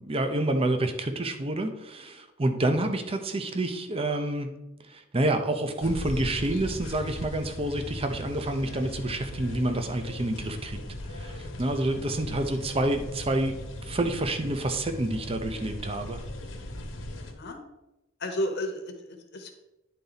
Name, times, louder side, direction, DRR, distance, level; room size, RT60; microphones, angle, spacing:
voice 1, 0.0-4.5 4.9-10.8 11.1-13.5 13.8-16.2, right 1 dB, 30° right, 6 dB, 0.6 m, -28 dB
sound 1, 5.8-17.3, left 1 dB, 75° left, 1.1 m, -38 dB
voice 2, 18.2-19.5, left 1 dB, 55° left, 5 dB, 1.0 m, -32 dB
10.0 x 4.0 x 3.9 m, 0.96 s
head